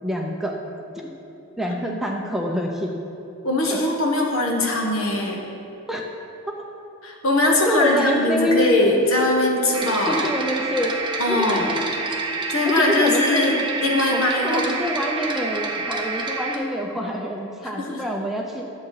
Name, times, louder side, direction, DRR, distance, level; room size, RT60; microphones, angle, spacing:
voice 1, 0.0-0.6 1.0-1.1 1.6-2.9 3.7-3.8 5.9-6.0 7.7-9.0 10.0-12.2 12.7-13.5 14.1-18.6, equal, ahead, 0 dB, 0.6 m, -26 dB
voice 2, 3.4-5.4 7.0-10.2 11.2-11.8 12.5-14.7 17.8-18.0, left 2 dB, 70° left, 0 dB, 1.5 m, -21 dB
sound 1, 9.7-16.6, right 3 dB, 20° right, 0.8 m, -28 dB
11.0 x 7.2 x 4.9 m, 2.9 s
head